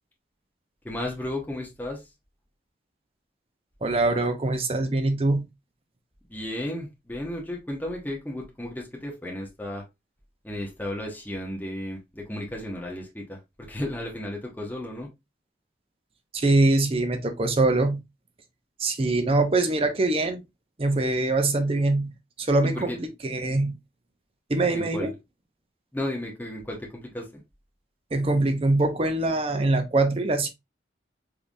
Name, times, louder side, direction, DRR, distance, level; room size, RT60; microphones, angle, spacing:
voice 1, 0.8-2.1 6.3-9.8 10.4-13.4 13.7-15.1 22.7-23.0 24.7-25.1 25.9-27.4, left 1 dB, 10° left, 0.9 m, -34 dB
voice 2, 3.8-5.5 16.3-18.0 18.8-20.4 20.8-22.1 22.4-22.9 23.2-23.8 24.5-25.1 28.1-30.5, right 2 dB, 30° right, 0.6 m, -23 dB
3.7 x 3.3 x 2.5 m
head